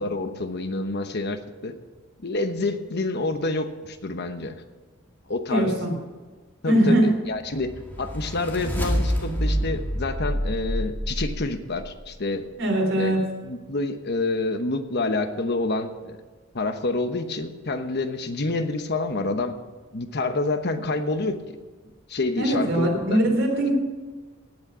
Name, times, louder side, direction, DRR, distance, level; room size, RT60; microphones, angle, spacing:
voice 1, 0.0-1.7 2.2-4.6 5.3-5.7 6.6-7.7 8.0-12.5 13.0-13.1 13.4-16.2 16.5-19.6 19.9-21.6 22.1-23.2, left 2 dB, 55° left, 8 dB, 1.0 m, -28 dB
voice 2, 5.5-5.9 6.6-7.1 12.6-13.2 22.4-23.7, right 1 dB, 70° right, 0 dB, 3.8 m, -21 dB
sound 1, 7.5-11.8, equal, 10° left, 2.1 m, -27 dB
17.5 x 6.4 x 6.3 m, 1.4 s
head